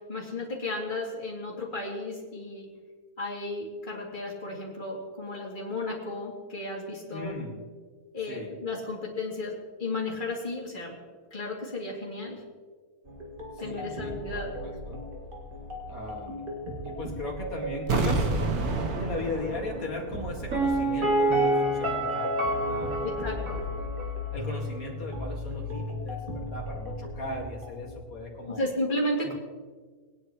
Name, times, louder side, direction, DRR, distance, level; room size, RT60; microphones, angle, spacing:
voice 1, 0.1-2.7 3.2-7.3 8.1-11.0 11.3-12.4 13.6-14.5 23.0-23.6 28.6-29.3, left 2 dB, 30° left, -3 dB, 2.8 m, -33 dB
voice 2, 7.1-7.7 8.3-8.5 13.5-14.2 14.6-15.0 15.9-16.5 16.8-18.3 19.0-23.9 24.3-28.6 29.2-29.3, left 2 dB, 65° left, -1 dB, 2.5 m, -38 dB
sound 1, 13.1-28.0, left 1 dB, 35° right, 2.1 m, -37 dB
sound 2, 17.9-20.8 21.0-21.1, right 3 dB, 80° right, 1.6 m, -29 dB
Piano, 20.5-24.3 24.5-24.6, right 1 dB, 65° right, 2.3 m, -27 dB
21.5 x 9.9 x 3.1 m, 1.5 s
omnidirectional pair, 1.6 m